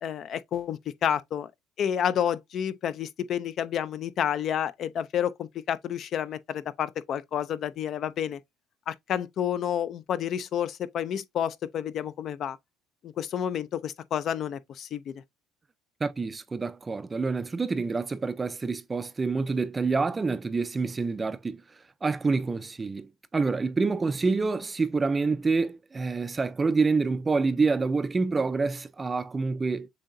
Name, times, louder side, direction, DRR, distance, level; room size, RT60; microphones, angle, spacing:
voice 1, 0.0-1.5 1.8-8.4 8.9-12.6 13.0-15.1, left 9 dB, 45° left, 0.4 m, -30 dB
voice 2, 16.0-21.6 22.0-29.9, right 4 dB, 20° right, 0.4 m, -27 dB
7.3 x 2.8 x 2.6 m
cardioid pair, 120°, 0 cm